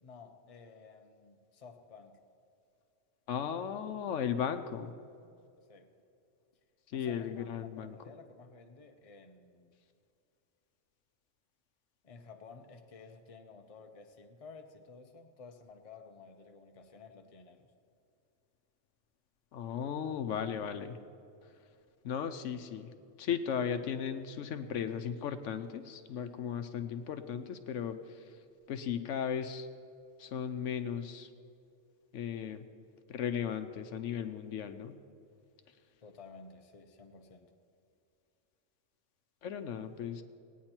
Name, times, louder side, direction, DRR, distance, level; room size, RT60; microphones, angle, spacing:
voice 1, 0.0-2.2 5.7-5.9 6.9-9.7 12.0-17.7 36.0-37.6, left 4 dB, 35° left, 4 dB, 0.8 m, -53 dB
voice 2, 3.3-4.9 6.9-8.0 19.5-21.0 22.0-22.9 23.2-28.0 28.7-29.7 30.2-31.3 32.1-32.7 33.1-35.0 39.4-40.2, left 8 dB, 80° left, 8 dB, 1.0 m, -36 dB
18.5 x 9.4 x 4.4 m, 2.6 s
omnidirectional pair, 1.3 m